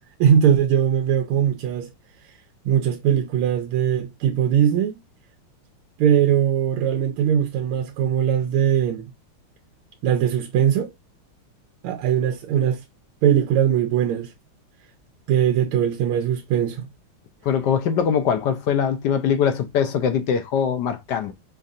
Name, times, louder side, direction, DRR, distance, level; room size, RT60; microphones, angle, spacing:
voice 1, 0.2-1.9 2.2-2.3 2.6-5.0 6.0-9.1 10.0-10.9 11.8-12.8 13.2-14.3 15.3-16.9, right 9 dB, 90° right, 1.5 m, -20 dB
voice 2, 17.4-21.3, left 7 dB, 75° left, 1.0 m, -22 dB
5.3 x 2.4 x 2.6 m
omnidirectional pair, 2.3 m